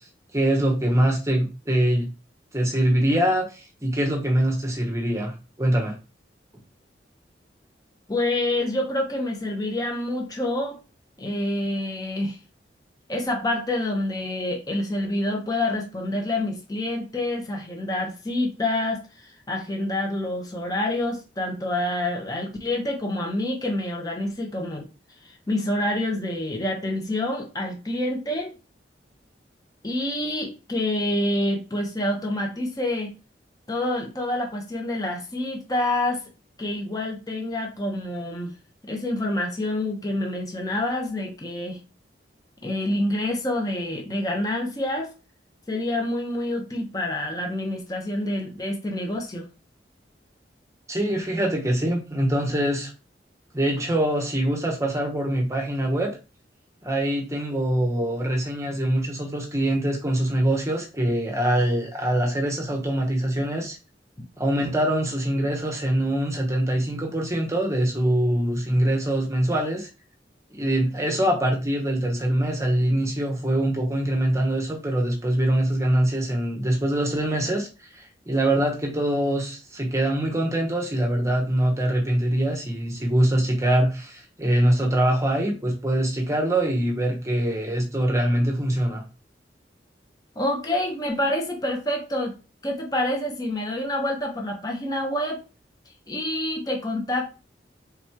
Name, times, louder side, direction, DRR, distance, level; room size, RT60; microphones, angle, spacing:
voice 1, 0.3-2.1 2.5-5.3 5.6-5.9 50.9-52.9 53.5-56.2 56.8-63.8 64.4-69.9 70.5-77.7 77.9-89.0, right 1 dB, 15° right, 1 dB, 0.8 m, -23 dB
voice 2, 8.1-10.8 11.2-12.4 13.1-24.9 25.5-28.5 29.8-33.1 33.7-36.2 36.6-38.5 38.8-41.8 42.6-45.1 45.7-49.5 90.4-92.3 92.6-95.4 96.1-97.3, left 1 dB, 20° left, 1 dB, 0.8 m, -27 dB
3.6 x 3.0 x 4.5 m, 0.31 s
head